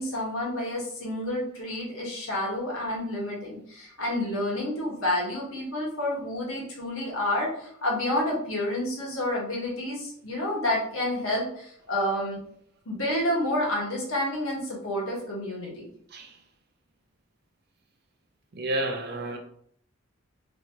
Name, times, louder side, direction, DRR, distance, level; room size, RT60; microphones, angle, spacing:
voice 1, 0.0-12.4 12.8-15.9, left 1 dB, 80° left, 1.2 m, -29 dB
voice 2, 18.5-19.4, right 1 dB, 50° right, 0.5 m, -30 dB
2.9 x 2.7 x 2.8 m
head